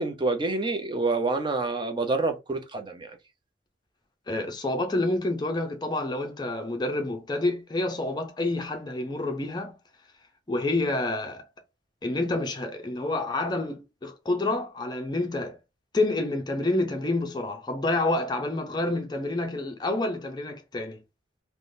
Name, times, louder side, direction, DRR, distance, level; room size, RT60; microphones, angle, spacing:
voice 1, 0.0-3.1, right 3 dB, 25° right, 0.5 m, -27 dB
voice 2, 4.3-9.7 10.5-11.5 12.0-15.6 15.9-21.0, left 2 dB, 20° left, 0.5 m, -28 dB
3.3 x 2.2 x 2.6 m
head